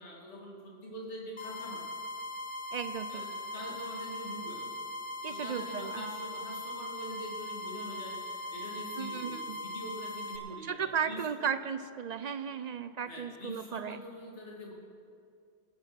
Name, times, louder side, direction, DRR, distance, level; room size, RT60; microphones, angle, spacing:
voice 1, 0.0-1.8 3.1-4.7 5.3-8.2 8.5-11.2 13.0-14.7, equal, 75° left, -3 dB, 2.5 m, -44 dB
sound 1, 1.4-10.4, left 1 dB, 45° left, 1.6 m, -40 dB
voice 2, 2.7-3.2 5.2-6.0 9.0-9.6 10.6-14.0, right 7 dB, 60° right, 12 dB, 0.4 m, -35 dB
20.5 x 7.5 x 5.8 m, 2.3 s
omnidirectional pair, 1.2 m